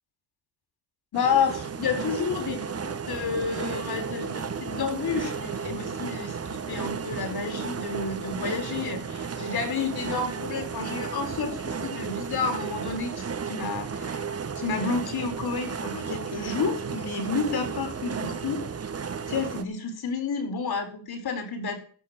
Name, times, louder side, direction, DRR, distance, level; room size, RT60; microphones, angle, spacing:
voice 1, 1.1-14.2 14.6-18.6 19.3-21.8, left 5 dB, 65° left, 5 dB, 4.5 m, -30 dB
sound 1, 1.1-19.6, right 6 dB, 35° right, 1.4 m, -33 dB
14.0 x 6.3 x 8.2 m, 0.43 s
cardioid pair, 85°, 41 cm